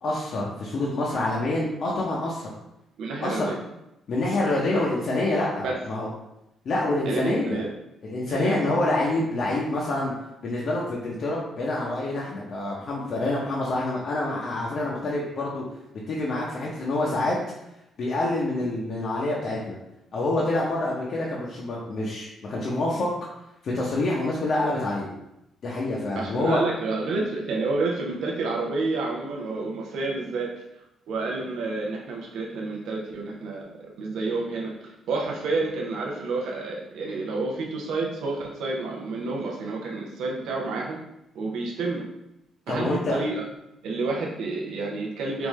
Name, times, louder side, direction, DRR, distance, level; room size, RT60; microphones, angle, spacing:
voice 1, 0.0-2.5 3.2-3.5 4.1-6.1 6.6-7.6 8.0-10.1 10.4-15.6 16.1-17.4 18.0-19.8 20.1-23.1 23.6-25.1 25.6-26.6 42.7-43.2, left 2 dB, 60° left, -4 dB, 0.6 m, -26 dB
voice 2, 3.0-3.6 5.6-5.8 7.1-7.7 8.3-8.6 26.2-30.5 31.1-41.0 41.3-42.0 42.7-43.4 43.8-45.5, right 3 dB, 80° right, -2 dB, 0.5 m, -29 dB
3.5 x 2.5 x 3.1 m, 0.88 s
cardioid pair, 90°, 0 cm